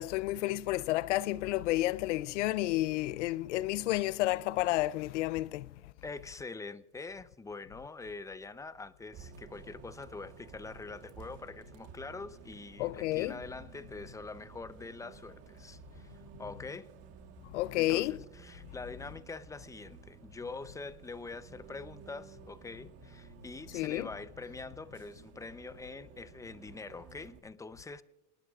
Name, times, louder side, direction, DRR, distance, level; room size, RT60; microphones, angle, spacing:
voice 1, 0.0-5.7 12.8-13.4 17.5-18.1 23.7-24.1, left 17 dB, 85° left, 0.6 m, -31 dB
voice 2, 6.0-16.9 17.8-28.0, left 3 dB, 10° left, 0.7 m, -44 dB
Bus, 9.1-27.4, right 7 dB, 45° right, 1.5 m, -54 dB
29.0 x 19.5 x 2.4 m
supercardioid pair, 115°, 35 cm